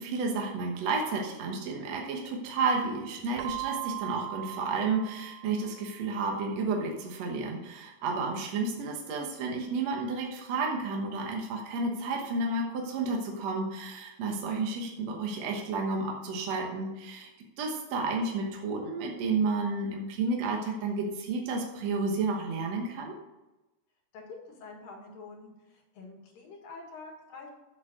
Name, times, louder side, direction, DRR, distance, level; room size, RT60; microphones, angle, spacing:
voice 1, 0.0-17.3 17.6-23.1, right 3 dB, 60° right, 0 dB, 2.1 m, -31 dB
Keyboard (musical), 3.4-6.1, right 19 dB, 80° right, 1.9 m, -39 dB
voice 2, 24.1-27.5, left 3 dB, 85° left, 1 dB, 3.6 m, -47 dB
8.0 x 7.3 x 6.6 m, 1.0 s
omnidirectional pair, 3.8 m